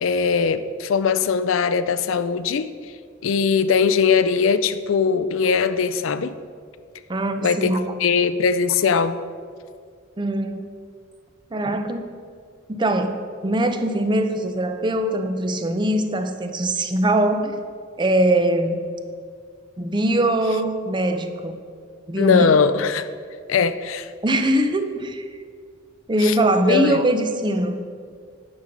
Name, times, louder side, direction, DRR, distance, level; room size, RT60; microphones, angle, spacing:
voice 1, 0.0-2.7 3.2-6.3 7.4-9.2 22.2-23.1 23.5-24.1 26.2-26.3 26.6-27.0, left 5 dB, 85° left, 12 dB, 0.5 m, -20 dB
voice 2, 7.1-8.0 10.2-10.6 11.5-12.1 12.7-13.1 13.4-17.6 18.0-18.8 19.8-21.6 22.1-22.5 24.2-25.2 26.1-27.8, right 1 dB, 25° right, 8 dB, 0.6 m, -22 dB
9.5 x 5.3 x 6.5 m, 2.1 s
head